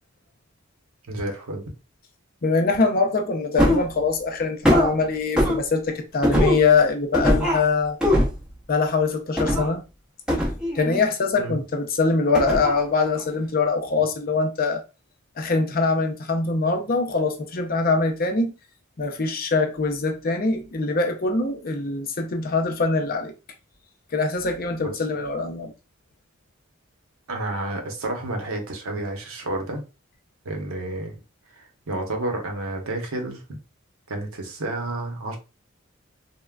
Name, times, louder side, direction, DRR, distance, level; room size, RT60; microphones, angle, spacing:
voice 1, 1.1-1.7 11.4-11.6 24.8-24.9 27.3-29.8 30.4-31.2 31.6-33.4 34.1-35.4, right 2 dB, 85° right, 0.8 m, -30 dB
voice 2, 2.4-8.0 8.7-9.8 10.7-14.8 15.4-18.5 19.0-23.3 24.1-25.7, left 4 dB, 45° left, 0.5 m, -23 dB
sound 1, 3.6-3.9 4.6-4.9 5.4-5.6 6.2-6.7 7.1-7.6 8.0-8.4 9.4-9.7 10.3-11.1 12.3-12.8 13.2-13.3, equal, 5° right, 0.7 m, -21 dB
3.5 x 2.1 x 2.2 m
head